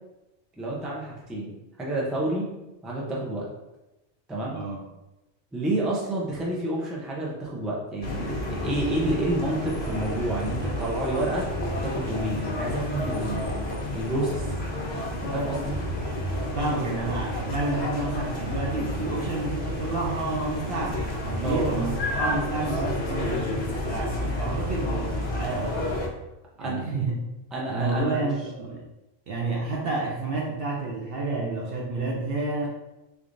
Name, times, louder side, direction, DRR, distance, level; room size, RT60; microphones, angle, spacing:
voice 1, 0.6-1.5 1.8-2.5 2.8-3.5 4.3-4.6 5.5-11.5 11.8-13.5 13.9-14.5 15.2-15.8 21.4-21.7 26.6-26.8 27.5-28.3, right 1 dB, ahead, -4 dB, 0.4 m, -29 dB
sound 1, 8.0-26.1, left 1 dB, 60° left, 1.0 m, -30 dB
voice 2, 16.6-25.8 26.6-27.2 27.7-28.9 29.3-32.7, right 3 dB, 60° right, -2 dB, 0.6 m, -30 dB
3.6 x 3.2 x 2.6 m, 0.97 s
omnidirectional pair, 1.3 m